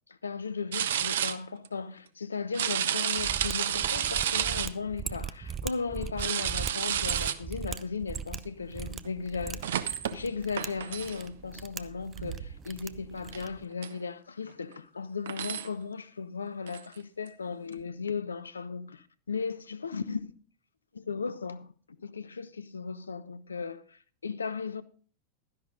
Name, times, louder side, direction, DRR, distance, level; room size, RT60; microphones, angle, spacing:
voice 1, 0.1-20.3 20.9-21.7 22.0-24.8, left 5 dB, 75° left, 0.7 m, -36 dB
sound 1, 0.7-1.4 1.6-1.7 2.5-4.7 6.2-7.3 9.0-9.1 9.6-10.2 10.6-11.2 12.2-12.5 12.9-13.1 13.3-13.4 13.8-13.9 14.7-14.8 15.3-15.7 16.7-16.8 17.3-17.4, right 9 dB, 60° right, 0.7 m, -30 dB
Mechanisms, 3.1-13.6, right 7 dB, 25° right, 0.5 m, -40 dB
12.0 x 11.0 x 3.7 m
figure-of-eight pair, 90°, 0 cm